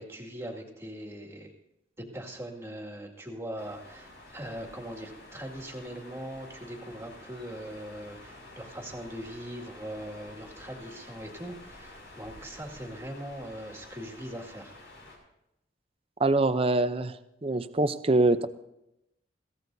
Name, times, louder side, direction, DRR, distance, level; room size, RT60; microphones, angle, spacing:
voice 1, 0.0-1.5 2.0-14.8, equal, 15° right, 1 dB, 2.1 m, -41 dB
sound 1, 3.6-15.2, left 1 dB, 70° left, 6.3 m, -50 dB
voice 2, 16.2-17.1 17.4-18.5, right 2 dB, 30° right, 11 dB, 0.6 m, -24 dB
22.0 x 16.5 x 2.7 m, 0.86 s
head